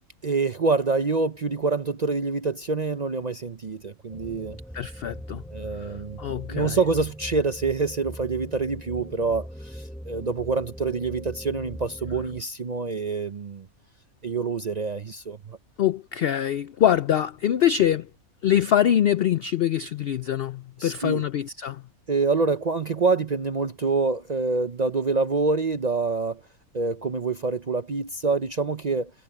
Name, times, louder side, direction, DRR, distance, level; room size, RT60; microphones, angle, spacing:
voice 1, 0.2-4.6 5.5-13.7 14.2-15.6 20.8-21.2 22.1-26.4 26.7-29.1, right 4 dB, 45° right, 0.5 m, -26 dB
sound 1, 4.1-12.4, equal, ahead, 0.9 m, -40 dB
voice 2, 4.7-5.4 5.8-5.9 6.2-6.8 15.8-18.1 18.4-21.8, left 10 dB, 75° left, 0.5 m, -24 dB
omnidirectional pair, 1.5 m